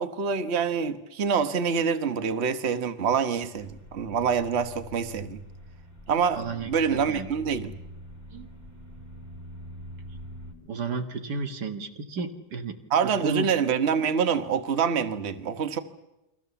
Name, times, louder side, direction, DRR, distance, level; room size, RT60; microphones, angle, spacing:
voice 1, 0.0-5.4 6.1-7.7 12.9-15.8, right 6 dB, 45° right, 1.4 m, -26 dB
sound 1, 3.6-10.5, equal, 10° right, 3.3 m, -44 dB
voice 2, 6.3-7.3 8.3-8.5 10.6-12.7 13.2-13.5, right 4 dB, 80° right, 2.2 m, -33 dB
29.0 x 23.0 x 7.1 m
omnidirectional pair, 1.7 m